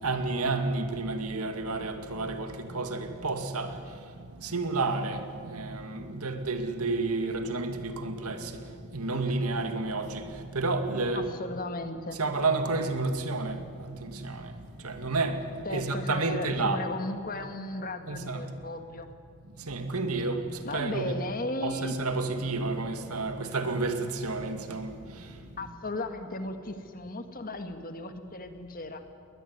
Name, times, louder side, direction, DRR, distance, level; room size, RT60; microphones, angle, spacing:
voice 1, 0.0-3.8 4.4-8.5 8.9-10.3 10.5-11.3 12.1-14.5 14.8-16.8 18.1-18.5 19.7-21.2 21.6-24.9, right 3 dB, 85° right, 7 dB, 2.2 m, -30 dB
voice 2, 11.1-12.2 15.6-19.1 20.6-22.0 25.6-29.0, left 2 dB, 40° left, 7 dB, 1.7 m, -36 dB
21.5 x 20.0 x 9.6 m, 2.3 s
head